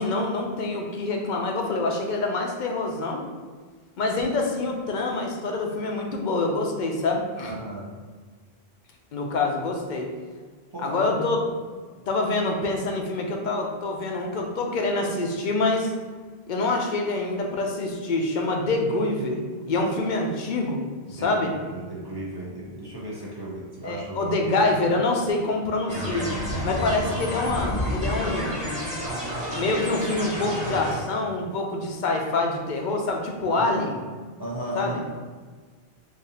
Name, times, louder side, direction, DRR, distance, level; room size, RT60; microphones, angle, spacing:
voice 1, 0.0-3.2 4.0-7.5 9.1-10.1 10.8-11.4 12.1-15.9 16.5-20.8 21.1-21.5 23.8-26.3 26.6-28.6 29.5-34.0 34.7-35.0, left 2 dB, 55° left, 2 dB, 0.6 m, -26 dB
voice 2, 7.5-7.9 10.7-11.3 21.1-24.5 33.4-33.9 34.4-35.1, right 1 dB, 30° right, -6 dB, 0.5 m, -35 dB
sound 1, 25.9-31.0, equal, 10° right, 1.4 m, -29 dB
3.9 x 2.6 x 2.7 m, 1.5 s
omnidirectional pair, 1.0 m